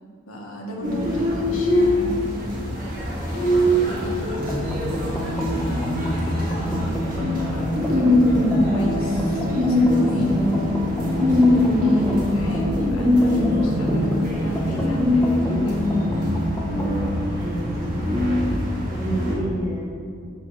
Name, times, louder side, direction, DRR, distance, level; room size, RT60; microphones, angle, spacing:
voice 1, 0.3-2.6 3.3-10.3 11.8-16.5, equal, 90° left, 0 dB, 1.3 m, -36 dB
voice 2, 0.8-1.1 17.3-18.4 18.9-19.9, right 2 dB, 15° right, -8 dB, 2.0 m, -31 dB
sound 1, 0.8-19.3, left 1 dB, 40° right, 1.6 m, -22 dB
sound 2, 4.4-17.1, equal, 10° left, 0.7 m, -28 dB
6.8 x 4.4 x 6.1 m, 2.2 s
head